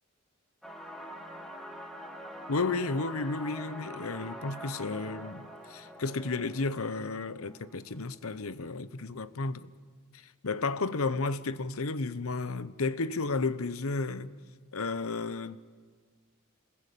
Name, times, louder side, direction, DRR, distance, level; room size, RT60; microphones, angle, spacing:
sound 1, 0.6-8.1, equal, ahead, 2.6 m, -45 dB
voice 1, 2.5-9.7 10.4-14.3 14.7-15.6, left 3 dB, 75° left, 0.9 m, -32 dB
27.5 x 21.0 x 8.4 m
head